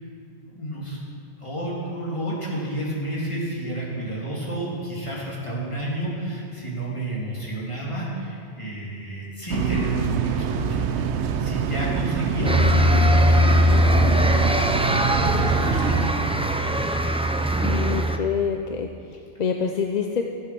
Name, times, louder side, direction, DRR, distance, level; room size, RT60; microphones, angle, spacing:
voice 1, 0.5-1.0 1.4-15.0 15.6-16.4, right 1 dB, 25° left, -6 dB, 3.1 m, -31 dB
sound 1, 9.5-16.1, right 7 dB, 85° right, 0.9 m, -25 dB
voice 2, 12.4-12.9 17.6-20.2, left 6 dB, 50° left, 4 dB, 0.6 m, -27 dB
sound 2, 12.4-18.2, equal, 10° right, 0.4 m, -20 dB
15.5 x 7.9 x 6.1 m, 2.4 s
omnidirectional pair, 1.1 m